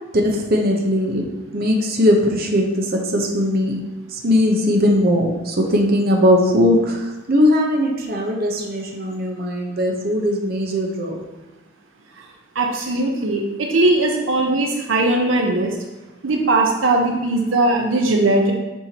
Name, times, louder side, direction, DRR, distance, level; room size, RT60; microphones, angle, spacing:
voice 1, 0.1-1.2 1.5-3.7 4.1-11.2, left 1 dB, 50° right, 1 dB, 0.9 m, -19 dB
voice 2, 12.5-15.7 16.2-18.5, right 2 dB, 80° right, 2 dB, 0.7 m, -19 dB
7.0 x 5.6 x 2.9 m, 1.1 s
head